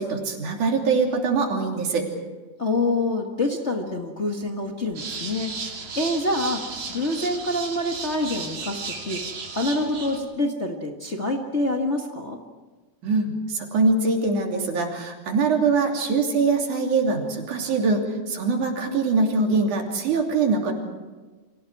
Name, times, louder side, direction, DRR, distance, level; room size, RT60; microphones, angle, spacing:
voice 1, 0.0-2.1 13.0-18.0 18.3-20.7, right 4 dB, 85° right, 1 dB, 4.4 m, -23 dB
voice 2, 2.6-5.7 5.9-6.6 6.9-9.2 9.5-12.4, left 2 dB, 30° left, 1 dB, 1.3 m, -26 dB
sound 1, 4.9-10.2, right 4 dB, 55° right, 3.8 m, -34 dB
30.0 x 24.5 x 4.8 m, 1.3 s
omnidirectional pair, 3.4 m